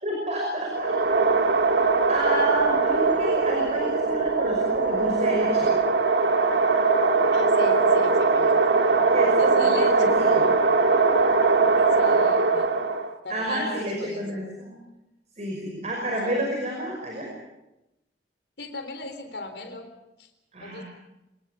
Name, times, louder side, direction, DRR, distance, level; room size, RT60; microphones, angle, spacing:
voice 1, 0.0-1.0 2.1-5.8 9.1-10.5 13.3-14.8 15.4-17.3 20.5-20.8, right 1 dB, 40° right, 0 dB, 5.6 m, -29 dB
sound 1, 0.7-13.1, right 4 dB, 80° right, 1.7 m, -21 dB
voice 2, 7.3-8.7 9.4-10.2 11.8-12.7 13.2-14.6 16.0-16.5 18.6-19.9 20.2-20.3 20.6-20.8, left 2 dB, 80° left, 6 dB, 3.9 m, -37 dB
25.0 x 20.0 x 7.1 m, 0.93 s
head